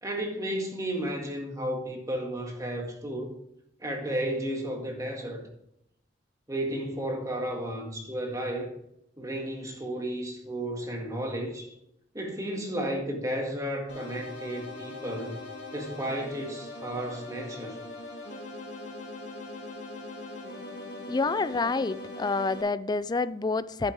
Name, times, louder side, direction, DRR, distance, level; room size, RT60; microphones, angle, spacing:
voice 1, 0.0-3.4 3.8-5.4 6.5-8.8 9.2-11.7 12.1-15.4 15.7-17.8, right 1 dB, 20° right, 1.9 m, -33 dB
sound 1, 13.9-22.6, left 2 dB, 85° left, 2.9 m, -41 dB
voice 2, 21.1-23.9, left 3 dB, 25° left, 0.4 m, -28 dB
10.5 x 8.4 x 3.4 m
head